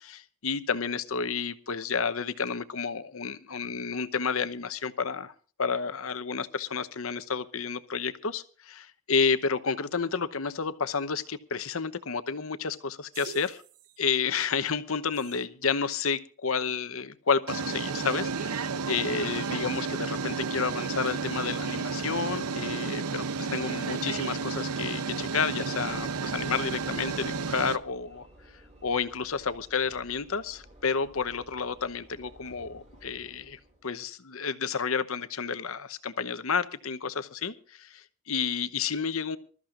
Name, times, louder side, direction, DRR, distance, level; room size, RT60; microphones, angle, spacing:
voice 1, 0.0-5.3 5.6-13.6 14.0-28.3 28.8-39.4, left 5 dB, 70° left, 12 dB, 0.9 m, -31 dB
sound 1, 13.1-13.6 15.3-15.4 17.5-27.8, right 4 dB, 85° right, 0.8 m, -32 dB
Train / Engine / Alarm, 25.8-34.1, right 1 dB, 30° right, 5.0 m, -55 dB
26.0 x 13.5 x 2.5 m, 0.39 s
head